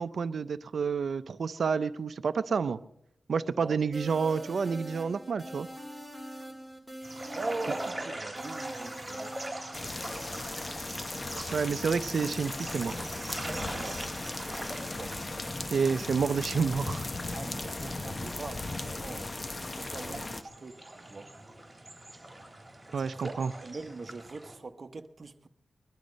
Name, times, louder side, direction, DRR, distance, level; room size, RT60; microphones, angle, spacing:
voice 1, 0.0-2.8 3.3-5.7 11.5-13.0 15.7-17.1 22.9-23.5, right 5 dB, 70° right, 0.5 m, -29 dB
sound 1, 3.9-9.8, right 1 dB, 5° left, 3.3 m, -43 dB
sound 2, 7.0-24.6, right 1 dB, 10° right, 3.4 m, -42 dB
voice 2, 7.3-9.4 11.3-11.8 13.7-14.1 14.3-15.1 17.3-19.4 19.8-20.8 21.1-21.3 23.0-25.5, right 3 dB, 45° right, 1.0 m, -42 dB
sound 3, 9.7-20.4, left 2 dB, 30° left, 0.9 m, -37 dB
21.0 x 11.5 x 5.2 m
wide cardioid pair, 100°, 0 cm